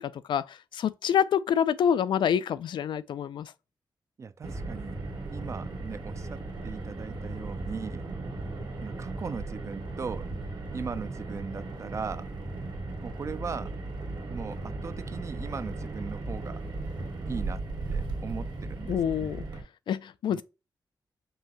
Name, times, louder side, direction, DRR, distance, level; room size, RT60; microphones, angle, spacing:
voice 1, 0.0-3.5 18.9-19.4 19.9-20.4, left 8 dB, 85° left, 0.4 m, -27 dB
voice 2, 4.2-5.0 5.3-8.0 8.8-10.3 10.7-12.3 13.0-13.7 14.3-16.6 17.3-17.6 17.9-19.3 20.3-20.4, right 5 dB, 40° right, 0.4 m, -38 dB
Car, 4.4-19.6, right 2 dB, 65° right, 1.6 m, -36 dB
5.5 x 2.8 x 3.0 m
wide cardioid pair, 125°, 8 cm